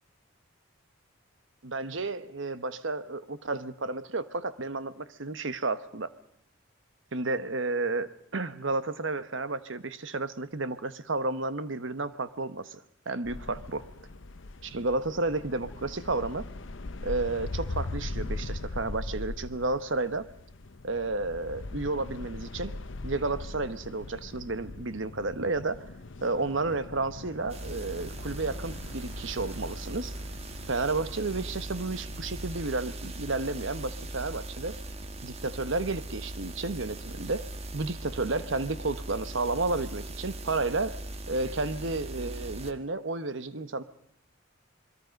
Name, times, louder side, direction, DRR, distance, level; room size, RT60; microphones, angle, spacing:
voice 1, 1.6-6.1 7.1-13.9 14.6-16.5 17.0-20.3 20.8-22.7 23.0-25.8 26.2-30.2 30.7-34.8 35.2-37.5 37.7-41.0 41.3-43.8, right 3 dB, 65° right, 13 dB, 1.1 m, -32 dB
sound 1, 13.2-32.6, left 2 dB, 65° left, 0.8 m, -41 dB
sound 2, 27.5-42.7, right 1 dB, 30° right, 1.3 m, -40 dB
28.0 x 21.5 x 5.3 m, 0.68 s
head